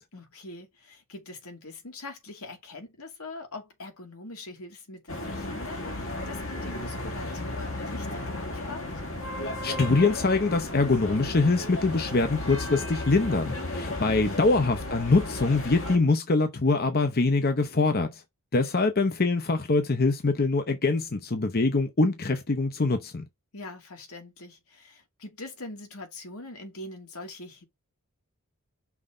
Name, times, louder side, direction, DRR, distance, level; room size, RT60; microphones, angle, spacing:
voice 1, 0.1-8.9 14.0-14.4 18.5-18.9 23.5-27.6, left 2 dB, 75° left, 2.2 m, -43 dB
sound 1, 5.1-16.0, left 1 dB, 60° left, 1.8 m, -34 dB
voice 2, 9.6-18.2 18.5-23.2, left 3 dB, 45° left, 0.7 m, -24 dB
5.8 x 3.7 x 5.4 m
head